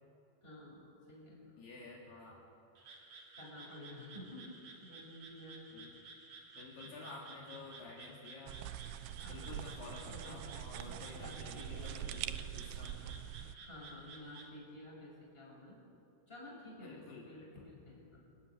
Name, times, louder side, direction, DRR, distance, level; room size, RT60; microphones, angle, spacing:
voice 1, 0.4-1.6 3.3-5.8 6.8-7.1 8.9-10.4 10.8-12.1 13.6-15.8 16.3-18.3, left 1 dB, 10° left, -2 dB, 6.1 m, -52 dB
voice 2, 1.6-2.4 5.7-5.9 6.6-8.7 9.0-13.2 16.8-17.7, left 3 dB, 60° left, -3 dB, 4.2 m, -51 dB
Frog, 2.8-14.5, right 4 dB, 40° right, 3.1 m, -55 dB
sound 1, 8.5-13.6, right 11 dB, 85° right, 2.5 m, -44 dB
27.5 x 15.5 x 9.8 m, 2.7 s
omnidirectional pair, 5.7 m